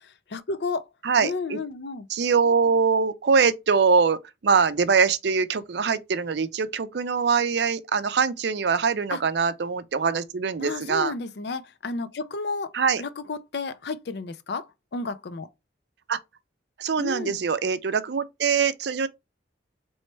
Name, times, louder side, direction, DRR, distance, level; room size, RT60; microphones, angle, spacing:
voice 1, 0.3-0.8 1.2-2.1 9.1-9.2 10.6-12.7 13.0-14.7 14.9-15.5 17.0-17.4, left 3 dB, 60° left, 0.5 m, -32 dB
voice 2, 1.0-1.6 2.1-11.1 12.7-13.0 16.1-16.2 16.8-19.1, right 5 dB, 60° right, 0.5 m, -23 dB
4.2 x 3.1 x 3.2 m
head